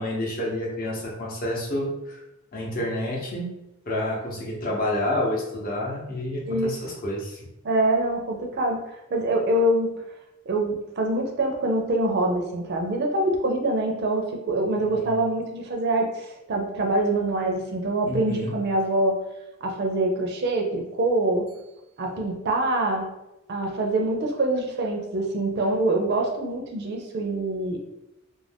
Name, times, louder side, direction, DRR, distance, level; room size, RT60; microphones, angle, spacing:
voice 1, 0.0-2.2 2.5-3.5 3.9-7.4 14.8-15.1 18.0-18.5, left 1 dB, 45° left, -3 dB, 0.7 m, -29 dB
voice 2, 7.6-8.8 9.1-9.9 10.5-19.2 19.6-21.4 22.0-23.0 23.5-27.8, right 2 dB, 50° right, 2 dB, 0.4 m, -25 dB
2.4 x 2.1 x 3.4 m, 0.92 s
head